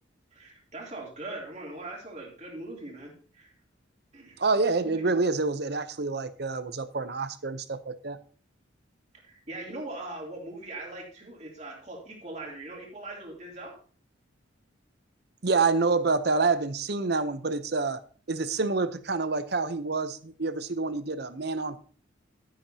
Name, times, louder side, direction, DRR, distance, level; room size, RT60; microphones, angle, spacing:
voice 1, 0.3-3.5 4.1-5.2 9.2-13.8, right 2 dB, 35° right, -1 dB, 2.9 m, -41 dB
voice 2, 4.4-8.2 15.4-18.0 18.3-21.8, right 3 dB, 55° right, 13 dB, 0.7 m, -27 dB
12.0 x 10.0 x 2.8 m, 0.43 s
head